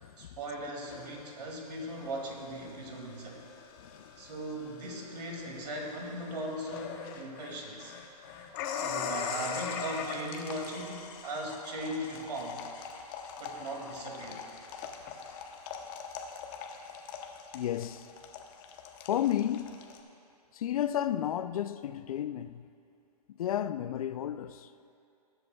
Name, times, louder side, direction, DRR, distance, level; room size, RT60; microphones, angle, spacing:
voice 1, 0.2-3.4 4.2-7.9 8.7-12.6 13.4-14.4, right 1 dB, 75° right, 2.2 m, -38 dB
sound 1, 0.9-20.0, left 6 dB, 30° left, 0.8 m, -42 dB
voice 2, 3.8-4.1 17.5-18.1 19.0-19.8 20.5-22.7 23.3-24.7, left 11 dB, 60° left, 0.4 m, -32 dB
20.0 x 8.0 x 2.2 m
hypercardioid pair, 150°, 21 cm